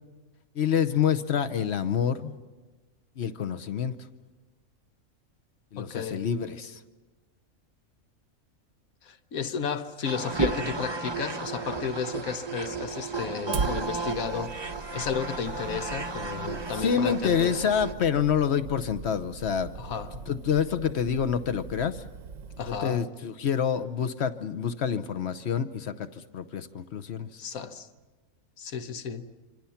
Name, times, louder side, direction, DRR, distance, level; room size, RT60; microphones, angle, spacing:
voice 1, 0.5-2.3 3.2-3.9 5.7-6.8 16.8-20.0 20.3-22.0 22.7-26.1 26.3-27.3, left 7 dB, 55° left, 1.1 m, -27 dB
voice 2, 5.8-6.2 9.0-14.5 14.9-17.5 19.8-20.2 22.6-23.1 27.4-27.9 28.6-29.3, left 7 dB, 75° left, 1.4 m, -33 dB
sound 1, 10.0-17.9, right 3 dB, 25° right, 0.6 m, -33 dB
Fire, 13.5-22.8, right 5 dB, 65° right, 1.2 m, -39 dB
26.0 x 26.0 x 5.8 m
omnidirectional pair, 1.5 m